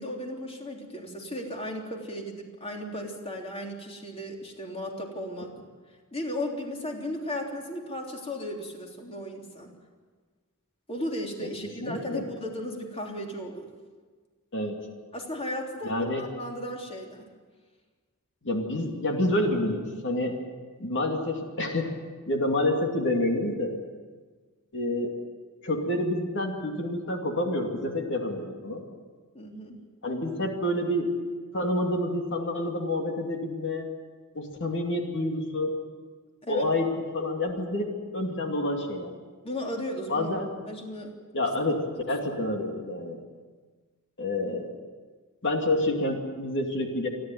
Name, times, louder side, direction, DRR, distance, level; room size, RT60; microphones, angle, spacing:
voice 1, 0.0-5.5 6.1-9.7 10.9-13.7 15.1-15.9 16.2-17.2 29.3-29.8 36.4-36.7 39.4-40.3 40.7-41.1, left 1 dB, 25° left, 1 dB, 3.3 m, -35 dB
voice 2, 11.8-12.2 14.5-14.8 15.8-16.3 18.4-20.4 20.8-21.9 22.3-23.7 24.7-25.1 25.6-28.8 30.0-31.1 31.5-33.9 34.3-35.7 36.5-36.9 37.1-39.1 40.1-40.5 41.3-41.8 42.1-43.2 44.2-44.8 45.4-47.1, left 1 dB, 55° left, 2 dB, 2.7 m, -28 dB
28.5 x 11.5 x 9.3 m, 1.4 s
head